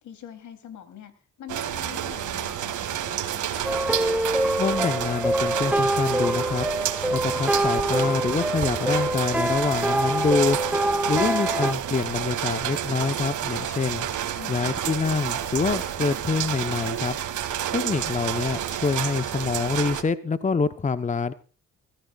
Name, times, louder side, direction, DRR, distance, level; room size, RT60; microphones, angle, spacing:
voice 1, 0.0-3.7 10.8-11.5 14.3-14.7, left 9 dB, 75° left, 10 dB, 3.3 m, -44 dB
sound 1, 1.5-20.0, right 10 dB, 75° right, 2.5 m, -30 dB
sound 2, 3.6-11.7, right 1 dB, 5° right, 0.6 m, -25 dB
voice 2, 4.6-6.7 7.1-10.6 11.1-14.1 14.5-17.2 17.7-21.3, left 4 dB, 25° left, 12 dB, 1.0 m, -26 dB
sound 3, 7.8-17.2, right 5 dB, 40° right, 2.7 m, -45 dB
23.5 x 15.0 x 2.4 m, 0.37 s
cardioid pair, 90°, 30 cm